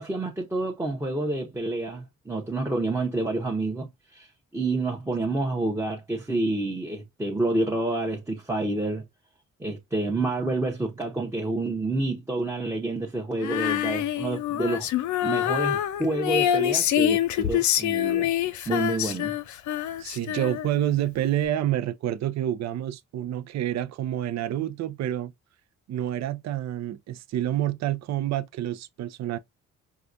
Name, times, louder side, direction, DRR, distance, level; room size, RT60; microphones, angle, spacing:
voice 1, 0.0-9.0 9.6-14.9 15.2-18.3 18.7-19.3, right 2 dB, 10° right, 0.8 m, -28 dB
Female singing, 13.4-20.9, left 11 dB, 70° left, 0.5 m, -26 dB
voice 2, 20.0-25.3 25.9-29.4, right 12 dB, 60° right, 0.5 m, -28 dB
4.8 x 2.3 x 2.6 m
cardioid pair, 90°, 30 cm